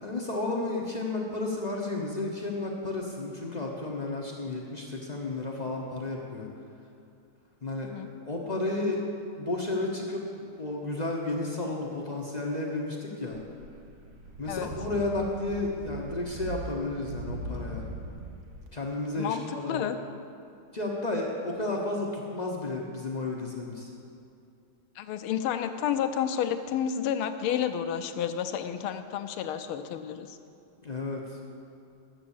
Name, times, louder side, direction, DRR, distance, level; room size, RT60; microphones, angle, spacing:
voice 1, 0.0-6.5 7.6-9.0 9.3-13.4 14.4-17.8 18.7-19.9 20.7-23.9 30.8-31.5, left 2 dB, 50° left, -2 dB, 0.4 m, -32 dB
sound 1, 13.3-18.7, right 2 dB, 70° right, 1.7 m, -40 dB
voice 2, 19.2-20.0 25.0-30.4, left 9 dB, 85° left, 8 dB, 1.5 m, -30 dB
10.5 x 7.4 x 7.1 m, 2.5 s
omnidirectional pair, 2.3 m